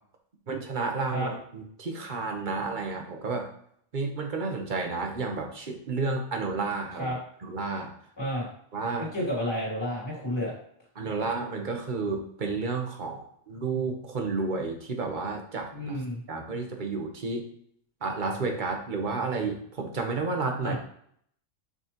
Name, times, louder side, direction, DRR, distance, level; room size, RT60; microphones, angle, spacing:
voice 1, 0.5-3.5 3.9-7.1 7.4-7.9 8.7-9.1 11.0-16.0 16.3-17.4 18.0-20.7, right 4 dB, 40° right, 3 dB, 1.1 m, -31 dB
voice 2, 8.2-8.5 9.1-10.5 15.7-16.2 20.6-20.8, equal, 20° left, -7 dB, 3.0 m, -30 dB
6.4 x 6.1 x 3.0 m, 0.65 s
omnidirectional pair, 1.3 m